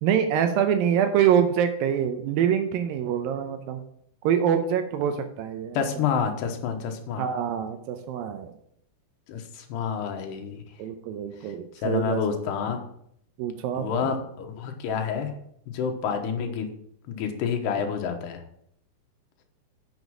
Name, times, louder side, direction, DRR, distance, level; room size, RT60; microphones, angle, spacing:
voice 1, 0.0-3.8 4.2-5.8 7.2-8.5 10.8-12.2 13.4-14.1, right 8 dB, 85° right, 7 dB, 2.0 m, -25 dB
voice 2, 5.7-7.3 9.3-10.6 11.4-11.5 11.8-12.8 13.7-15.3 15.7-16.7 17.1-18.4, left 6 dB, 75° left, 4 dB, 3.2 m, -28 dB
8.0 x 7.1 x 6.1 m, 0.70 s
omnidirectional pair, 5.0 m